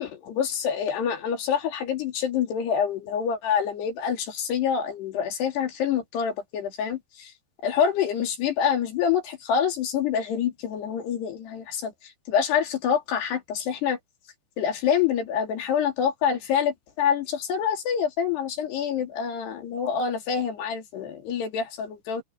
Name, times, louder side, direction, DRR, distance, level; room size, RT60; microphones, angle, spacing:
voice 1, 0.0-7.3 7.6-11.9 12.3-14.0 14.6-22.2, left 7 dB, 70° left, 4.8 m, -26 dB
omnidirectional pair, 4.9 m